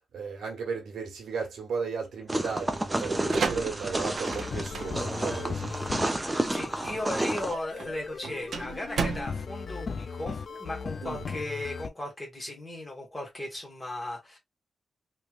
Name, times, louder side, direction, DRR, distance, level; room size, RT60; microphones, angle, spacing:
voice 1, 0.1-5.8 11.0-11.3, right 5 dB, 75° right, 1.1 m, -35 dB
sound 1, 2.3-7.5, right 1 dB, 15° right, 0.6 m, -31 dB
sound 2, 3.0-10.6, right 5 dB, 60° right, 0.6 m, -36 dB
sound 3, 4.2-11.9, left 5 dB, 50° left, 0.4 m, -38 dB
voice 2, 6.5-14.4, left 1 dB, 15° left, 1.7 m, -37 dB
3.2 x 3.0 x 2.4 m
wide cardioid pair, 120°, 0 cm